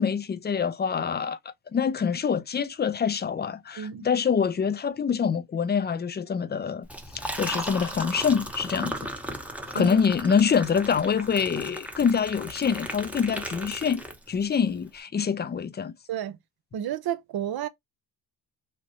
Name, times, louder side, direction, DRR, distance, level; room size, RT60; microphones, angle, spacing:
voice 1, 0.0-1.4 1.7-6.9 7.4-9.1 9.7-15.9, left 6 dB, 20° left, 0.4 m, -25 dB
voice 2, 3.8-4.1 8.8-8.9 9.7-10.0 16.1-16.4 16.7-17.7, right 10 dB, 50° right, 0.6 m, -31 dB
Liquid, 6.8-14.5, right 1 dB, 5° right, 0.8 m, -36 dB
3.1 x 2.0 x 3.9 m
supercardioid pair, 60°, 49 cm